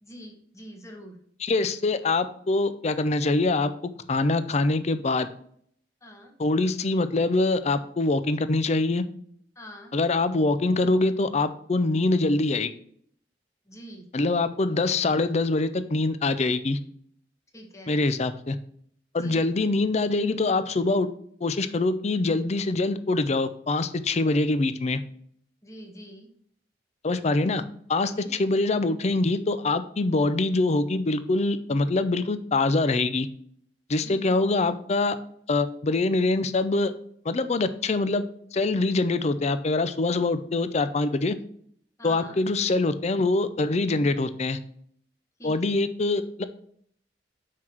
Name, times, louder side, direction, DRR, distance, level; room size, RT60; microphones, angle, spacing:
voice 1, 0.0-1.2 6.0-6.3 9.5-9.9 13.7-14.1 17.5-18.0 19.2-19.5 25.6-26.3 28.1-28.6 34.0-34.3 42.0-42.4 45.4-45.8, equal, 15° left, 2 dB, 1.3 m, -45 dB
voice 2, 1.4-3.7 4.1-5.3 6.4-9.0 9.9-12.7 14.1-16.8 17.9-18.6 19.1-21.1 21.4-25.0 27.0-27.6 27.9-33.3 33.9-35.2 35.5-36.9 37.3-38.2 38.5-41.4 42.0-44.6 45.4-46.4, left 2 dB, 40° left, 12 dB, 0.5 m, -24 dB
5.8 x 4.6 x 6.1 m, 0.63 s
head